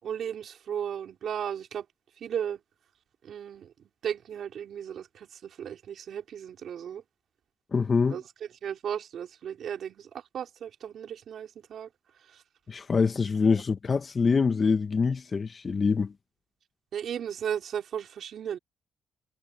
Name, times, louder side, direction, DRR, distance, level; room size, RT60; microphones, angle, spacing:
voice 1, 0.0-1.9 2.2-2.6 3.2-7.0 8.1-8.2 8.6-11.9 12.3-12.4 16.9-18.6, right 9 dB, 65° right, 3.8 m, -35 dB
voice 2, 7.7-8.2 12.7-16.1, left 5 dB, 35° left, 1.3 m, -25 dB
cardioid pair, 90°, 0 cm